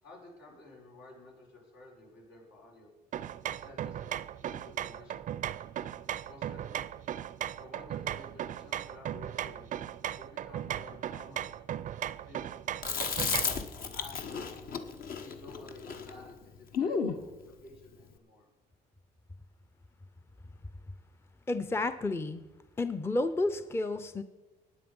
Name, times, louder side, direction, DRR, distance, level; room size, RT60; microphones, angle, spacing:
voice 1, 0.0-2.9 3.4-5.5 6.3-6.8 7.6-9.7 10.2-11.5 12.3-12.5 12.8-13.6 13.9-14.6 15.2-18.5, left 2 dB, 85° left, -3 dB, 5.8 m, -52 dB
sound 1, 3.1-13.7, right 11 dB, 50° right, 0.5 m, -37 dB
Chewing mastication, 12.8-17.2, left 6 dB, 60° left, 1.2 m, -33 dB
voice 2, 21.5-22.4 22.8-24.2, left 2 dB, 15° left, 11 dB, 0.6 m, -31 dB
16.0 x 9.3 x 5.4 m, 1.1 s
cardioid pair, 110°, 17 cm